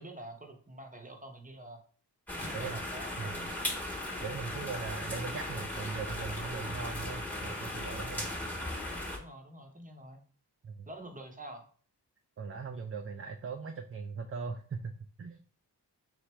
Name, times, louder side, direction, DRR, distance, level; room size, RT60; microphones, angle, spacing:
voice 1, 0.0-1.8 2.4-3.5 9.2-10.2 10.9-11.6, right 1 dB, 20° right, 4 dB, 0.8 m, -47 dB
sound 1, 2.3-9.2, left 1 dB, 5° left, 1.2 m, -37 dB
voice 2, 4.2-8.3 10.6-10.7 12.4-15.4, right 5 dB, 35° right, 5 dB, 0.4 m, -39 dB
3.8 x 3.3 x 3.1 m, 0.43 s
wide cardioid pair, 60°, 40 cm